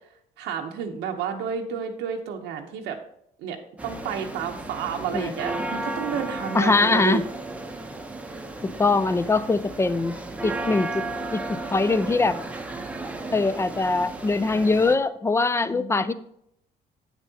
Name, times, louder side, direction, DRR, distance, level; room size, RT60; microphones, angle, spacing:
voice 1, 0.4-3.0 3.4-3.6 3.8-7.2 15.7-16.1, right 7 dB, 90° right, 3 dB, 0.8 m, -31 dB
sound 1, 3.8-15.0, right 2 dB, 10° right, 0.7 m, -34 dB
voice 2, 6.5-7.2 8.6-10.2 10.4-11.1 11.3-12.4 13.3-16.1, left 3 dB, 15° left, 14 dB, 0.4 m, -22 dB
8.4 x 7.1 x 2.8 m, 0.72 s
cardioid pair, 110°, 17 cm